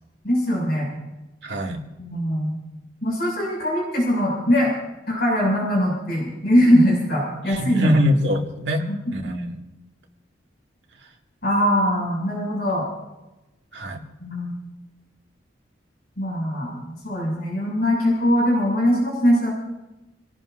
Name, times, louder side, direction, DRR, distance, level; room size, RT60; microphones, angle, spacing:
voice 1, 0.2-0.9 2.0-2.6 3.0-4.7 5.1-7.9 8.9-9.0 11.4-12.9 14.2-14.5 16.2-19.5, equal, 55° left, -2 dB, 6.5 m, -21 dB
voice 2, 1.4-1.8 7.5-8.8 9.1-9.6 13.7-14.0, equal, 65° right, 0 dB, 2.3 m, -23 dB
28.5 x 18.0 x 2.7 m, 1.0 s
head